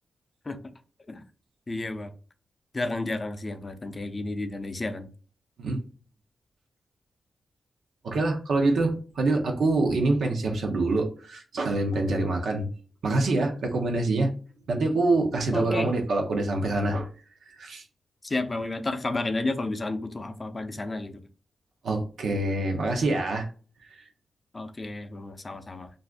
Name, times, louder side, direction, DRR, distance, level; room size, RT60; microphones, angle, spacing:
voice 1, 1.7-2.1 2.7-5.1 15.5-15.9 18.2-21.2 24.5-25.9, left 2 dB, 30° left, 0.4 m, -31 dB
voice 2, 8.0-12.7 13.0-14.3 14.7-17.1 17.5-17.8 21.8-23.5 23.9-24.0, right 2 dB, 85° right, 0.7 m, -25 dB
2.5 x 2.4 x 3.4 m
cardioid pair, 95°, 0 cm